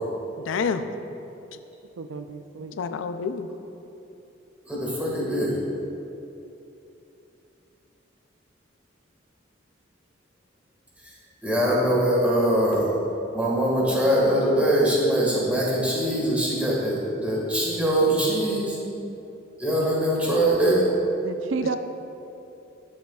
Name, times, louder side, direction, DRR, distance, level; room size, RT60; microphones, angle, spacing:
voice 1, 0.4-0.9 2.8-3.5, left 6 dB, 85° left, 9 dB, 0.4 m, -28 dB
voice 2, 2.0-2.8 21.2-21.8, right 4 dB, 85° right, 8 dB, 0.4 m, -31 dB
voice 3, 4.7-5.6 11.0-11.1 11.4-12.8 13.3-18.8 19.6-20.8, right 1 dB, 10° right, -6 dB, 1.6 m, -22 dB
13.0 x 6.5 x 2.3 m, 2.8 s
head